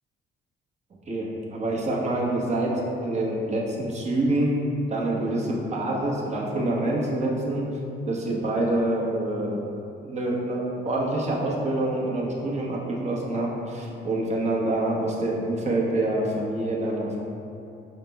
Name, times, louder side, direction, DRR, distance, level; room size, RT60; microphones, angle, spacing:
voice 1, 1.1-4.5 4.9-7.6 8.1-9.6 10.0-17.2, right 1 dB, 35° right, -4 dB, 0.8 m, -26 dB
4.9 x 2.0 x 3.3 m, 2.7 s
cardioid pair, 90°, 20 cm